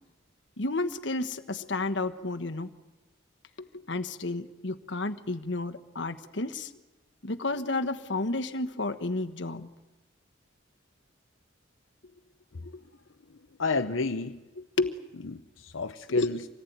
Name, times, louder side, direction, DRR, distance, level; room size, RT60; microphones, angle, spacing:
voice 1, 0.6-2.7 3.6-6.7 7.2-9.7 12.6-12.7 14.8-14.9 16.1-16.3, left 2 dB, 65° left, 8 dB, 1.3 m, -31 dB
voice 2, 13.6-14.4 15.1-16.5, left 3 dB, 80° left, 7 dB, 0.8 m, -31 dB
25.5 x 18.5 x 9.4 m, 1.1 s
head